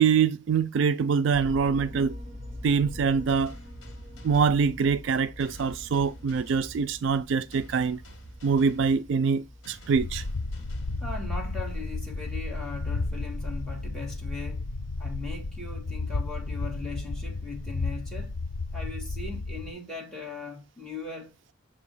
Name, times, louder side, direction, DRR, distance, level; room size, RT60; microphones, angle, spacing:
voice 1, 0.0-2.2 2.6-3.5 4.2-8.0 8.4-10.2, right 6 dB, 60° right, 0.3 m, -24 dB
sound 1, 1.3-13.9, left 1 dB, 30° right, 3.0 m, -46 dB
sound 2, 3.3-11.7, right 1 dB, 60° left, 1.7 m, -49 dB
sound 3, 10.0-19.7, left 3 dB, 80° left, 0.6 m, -33 dB
voice 2, 11.0-14.7 15.0-18.4 18.7-21.4, left 3 dB, 5° left, 1.7 m, -39 dB
6.8 x 2.7 x 5.4 m
head